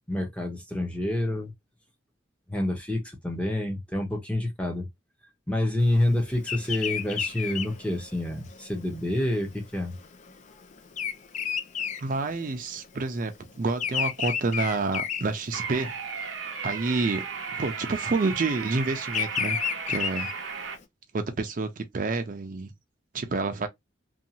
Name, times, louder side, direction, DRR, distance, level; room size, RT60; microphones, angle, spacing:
voice 1, 0.1-1.5 2.5-4.9 5.5-9.9, left 1 dB, 5° left, 0.7 m, -28 dB
Bird vocalization bird call bird song, 6.4-12.9 13.1-16.0 16.5-16.8 17.8-20.8, left 8 dB, 40° left, 0.4 m, -32 dB
voice 2, 12.0-13.3 13.6-16.3 16.6-17.3 17.5-19.6 19.9-20.3 21.1-22.7 23.1-23.7, right 3 dB, 45° right, 0.4 m, -28 dB
sound 1, 15.5-20.8, right 6 dB, 85° right, 0.7 m, -35 dB
2.6 x 2.3 x 2.8 m
head